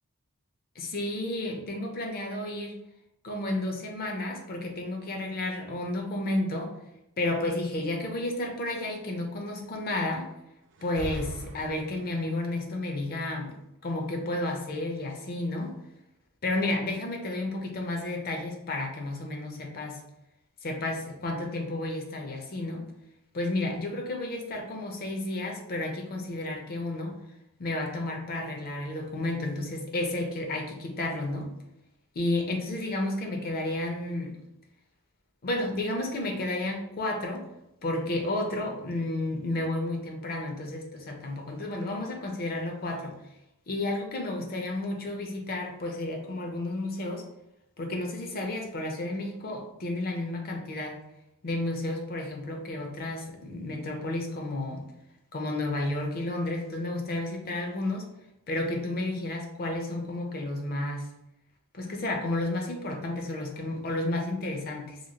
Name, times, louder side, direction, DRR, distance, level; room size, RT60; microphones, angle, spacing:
voice 1, 0.8-2.7 3.2-6.7 7.2-10.3 10.8-13.5 13.8-15.8 16.4-20.0 20.6-22.8 23.3-27.2 27.6-31.5 32.1-34.4 35.4-37.5 37.8-43.2 43.7-47.2 47.8-51.0 51.4-54.8 55.3-58.1 58.5-61.1 61.7-65.0, left 2 dB, 45° left, 2 dB, 0.5 m, -32 dB
sound 1, 10.7-12.4, right 2 dB, 55° right, 0.4 m, -40 dB
2.9 x 2.6 x 2.8 m, 0.84 s
head